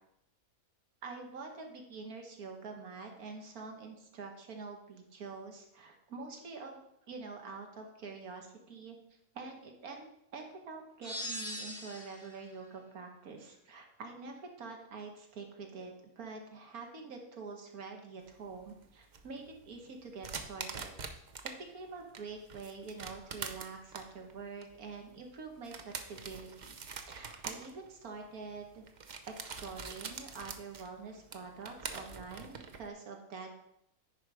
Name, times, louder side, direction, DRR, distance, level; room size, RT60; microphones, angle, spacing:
voice 1, 1.0-6.8 7.1-9.0 9.3-20.9 21.6-26.8 27.0-28.8 29.3-33.5, right 4 dB, 75° right, 3 dB, 1.8 m, -46 dB
sound 1, 11.0-12.4, equal, 50° left, 4.0 m, -41 dB
sound 2, 18.3-21.6 21.9-32.9, right 5 dB, 50° right, 0.5 m, -45 dB
10.0 x 4.6 x 4.8 m, 0.78 s
omnidirectional pair, 1.6 m